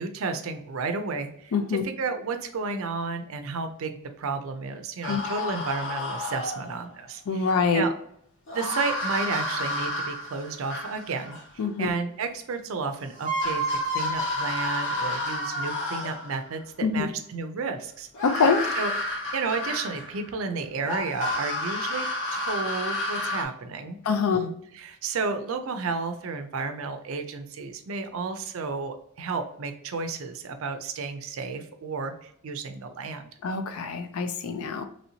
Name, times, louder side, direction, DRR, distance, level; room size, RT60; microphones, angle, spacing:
voice 1, 0.0-7.9 8.5-18.1 18.8-18.9 19.3-24.0 24.3-33.3, right 4 dB, 65° right, 7 dB, 0.4 m, -32 dB
voice 2, 1.5-1.8 5.1-5.2 7.3-7.9 11.6-11.9 16.8-17.1 18.2-18.6 24.0-24.5 33.4-34.8, left 5 dB, 80° left, 8 dB, 0.4 m, -25 dB
sound 1, 5.0-6.9 8.5-11.5 12.8-12.9 13.2-16.4 18.1-20.3 20.9-23.4, left 1 dB, 55° left, 0.9 m, -30 dB
3.0 x 2.7 x 2.8 m, 0.68 s
head